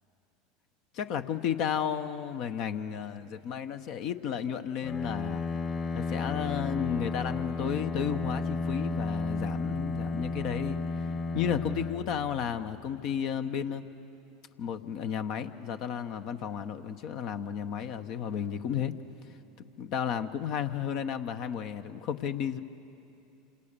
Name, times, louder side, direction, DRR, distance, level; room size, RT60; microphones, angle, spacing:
voice 1, 0.9-5.4 5.9-10.8 11.3-13.8 14.6-19.0 19.8-22.6, left 8 dB, 55° left, 8 dB, 1.1 m, -33 dB
Bowed string instrument, 4.8-12.8, left 3 dB, 35° left, 1.8 m, -33 dB
27.0 x 27.0 x 6.9 m, 2.8 s
hypercardioid pair, 90°, 0 cm